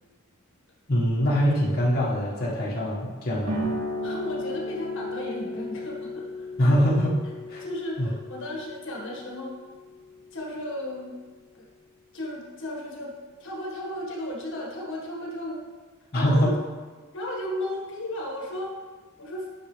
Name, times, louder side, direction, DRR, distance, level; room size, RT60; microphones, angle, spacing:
voice 1, 0.9-3.7 6.6-7.2 7.5-7.6 8.0-8.1 16.1-16.5, equal, 45° left, -7 dB, 1.6 m, -23 dB
sound 1, 3.5-10.6, left 1 dB, 70° right, 2.6 m, -35 dB
voice 2, 4.0-6.5 7.6-9.5 10.3-11.1 11.5-11.7 12.1-13.1 13.4-15.6 16.1-16.5 17.1-18.7 19.2-19.4, left 1 dB, 60° left, -2 dB, 1.7 m, -34 dB
11.0 x 6.4 x 3.3 m, 1.4 s
head